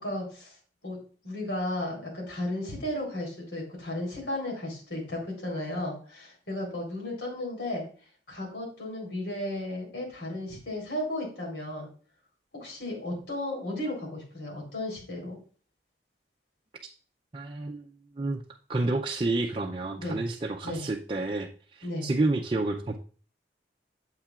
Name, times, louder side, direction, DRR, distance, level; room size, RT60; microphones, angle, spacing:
voice 1, 0.0-0.5 0.8-1.0 1.2-7.8 8.3-11.9 12.5-15.4 20.0-20.2 20.6-20.8 21.8-22.1, left 1 dB, 85° left, -1 dB, 3.6 m, -34 dB
voice 2, 17.3-18.4 18.7-23.0, right 2 dB, 30° right, 0 dB, 0.5 m, -30 dB
8.7 x 7.5 x 2.4 m, 0.42 s
head